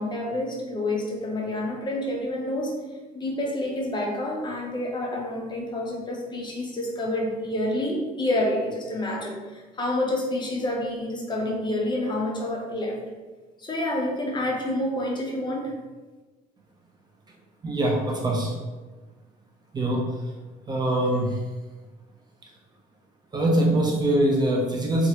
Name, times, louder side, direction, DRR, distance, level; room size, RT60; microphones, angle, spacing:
voice 1, 0.0-2.8 3.1-13.0 13.6-15.7, left 1 dB, 25° left, -1 dB, 0.6 m, -28 dB
voice 2, 17.6-18.5 19.7-20.1 20.7-21.4 23.3-25.1, right 1 dB, 25° right, -1 dB, 0.5 m, -23 dB
3.0 x 2.4 x 2.8 m, 1.3 s
cardioid pair, 110°, 17 cm